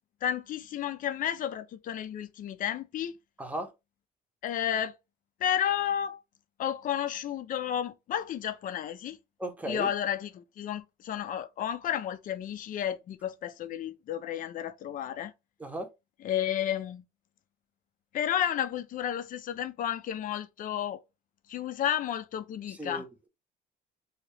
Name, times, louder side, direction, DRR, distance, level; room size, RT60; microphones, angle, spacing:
voice 1, 0.2-3.2 4.4-5.0 5.4-6.2 6.6-9.2 9.7-15.3 16.2-17.0 18.1-21.0 21.5-23.0, left 10 dB, 55° left, 0.5 m, -32 dB
voice 2, 3.4-3.7 9.4-9.9 15.6-15.9 22.7-23.3, right 1 dB, 10° right, 0.8 m, -36 dB
2.8 x 2.8 x 3.2 m
cardioid pair, 110°, 17 cm